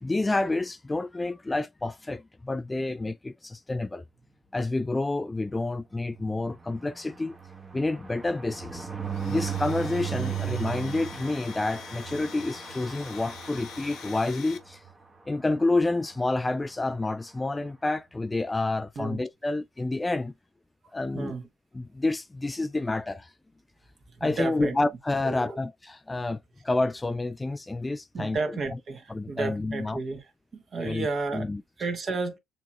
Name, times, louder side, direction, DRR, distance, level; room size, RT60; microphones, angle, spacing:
voice 1, 0.0-4.0 4.5-7.4 7.7-8.9 9.3-14.8 15.3-20.3 20.9-21.3 21.7-23.3 24.2-28.4 29.1-30.0 30.8-31.1 31.3-31.6, left 2 dB, 15° left, 0.3 m, -29 dB
sound 1, 6.1-14.9 15.3-15.5 15.8-15.9 16.1-16.4, right 8 dB, 30° right, 1.2 m, -36 dB
Domestic sounds home sounds, 9.1-14.6, left 8 dB, 60° left, 1.0 m, -45 dB
voice 2, 21.1-21.5 24.2-24.8 25.2-25.6 28.1-30.2 30.5-31.5 31.8-32.4, right 3 dB, 45° right, 1.4 m, -32 dB
6.8 x 3.0 x 2.3 m
hypercardioid pair, 60°, 0 cm